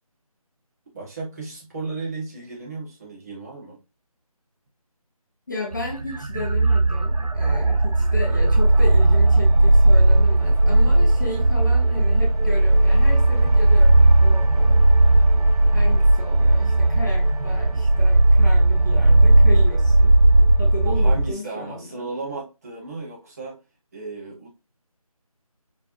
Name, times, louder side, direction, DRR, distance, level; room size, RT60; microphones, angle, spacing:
voice 1, 0.9-3.8 20.8-23.6 23.9-24.5, right 3 dB, 25° right, 1.4 m, -34 dB
voice 2, 5.5-14.9 15.7-20.2 20.6-22.1, left 2 dB, 30° left, 0.7 m, -34 dB
sound 1, 5.7-21.3, right 2 dB, 75° right, 0.7 m, -16 dB
4.6 x 3.3 x 2.5 m
figure-of-eight pair, 165°, 19 cm